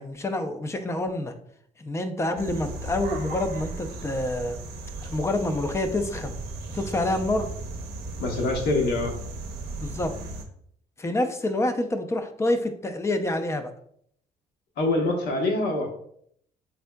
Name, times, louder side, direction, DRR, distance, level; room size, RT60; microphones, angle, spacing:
voice 1, 0.0-1.3 1.8-4.6 5.0-6.4 6.7-7.5 9.8-10.1 11.0-13.7, left 1 dB, 15° left, 7 dB, 0.4 m, -27 dB
sound 1, 2.4-10.4, right 2 dB, 70° right, 0.6 m, -36 dB
voice 2, 8.2-9.2 14.8-15.9, left 2 dB, 70° left, 1 dB, 0.9 m, -25 dB
3.5 x 3.5 x 2.2 m, 0.66 s
cardioid pair, 110°, 17 cm